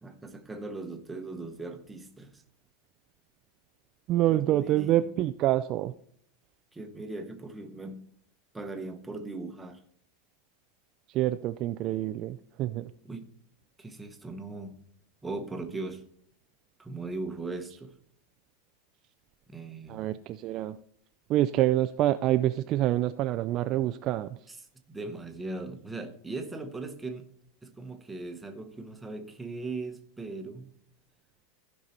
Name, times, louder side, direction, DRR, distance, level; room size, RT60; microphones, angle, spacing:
voice 1, 0.0-2.4 4.3-5.0 6.7-8.0 8.5-9.8 13.0-13.3 13.8-14.7 15.2-16.0 16.8-17.9 19.5-20.1 24.5-24.6 24.9-27.2 27.6-30.7, right 3 dB, 5° right, 5 dB, 0.9 m, -39 dB
voice 2, 4.1-5.9 11.1-12.9 19.9-20.8 21.3-24.4, right 14 dB, 35° right, 10 dB, 0.3 m, -27 dB
15.5 x 5.4 x 4.3 m, 0.63 s
supercardioid pair, 165°, 0 cm